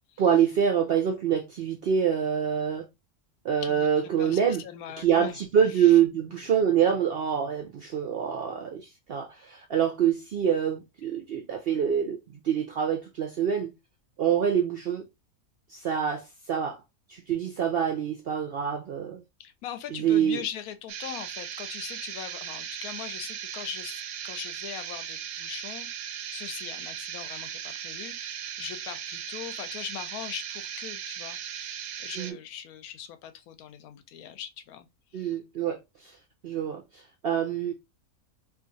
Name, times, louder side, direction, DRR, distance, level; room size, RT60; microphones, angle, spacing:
voice 1, 0.2-2.8 3.4-4.6 5.0-13.7 14.2-15.0 15.7-16.8 17.1-19.2 19.9-20.4 32.2-32.4 35.1-36.1 36.4-37.7, right 8 dB, 70° right, 0.5 m, -26 dB
voice 2, 3.6-5.4 5.7-6.0 19.4-34.9 35.1-35.4, left 9 dB, 80° left, 1.1 m, -41 dB
sound 1, 20.9-32.3, right 9 dB, 85° right, 1.1 m, -37 dB
2.9 x 2.4 x 3.8 m
omnidirectional pair, 1.6 m